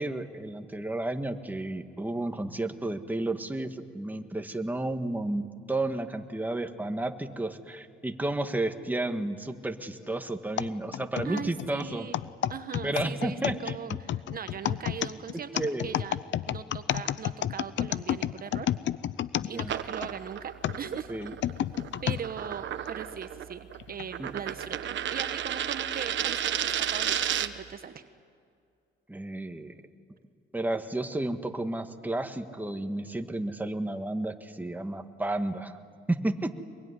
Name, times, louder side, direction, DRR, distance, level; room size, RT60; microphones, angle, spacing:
voice 1, 0.0-12.1 12.8-14.0 15.3-15.9 19.4-19.7 21.1-21.3 24.2-24.3 29.1-29.7 30.5-35.7 36.1-36.6, right 2 dB, 10° right, 6 dB, 1.6 m, -32 dB
sound 1, 10.6-20.1 20.6-22.2 22.8-22.9 23.8-24.1, left 11 dB, 70° left, 0.7 m, -31 dB
voice 2, 11.2-12.2 12.5-16.2 16.5-18.7 19.4-21.1 22.0-28.0, right 7 dB, 50° right, 10 dB, 1.1 m, -39 dB
sound 2, 19.6-27.7, right 10 dB, 70° right, 1.2 m, -33 dB
24.0 x 22.5 x 9.8 m, 2.3 s
cardioid pair, 90°, 20 cm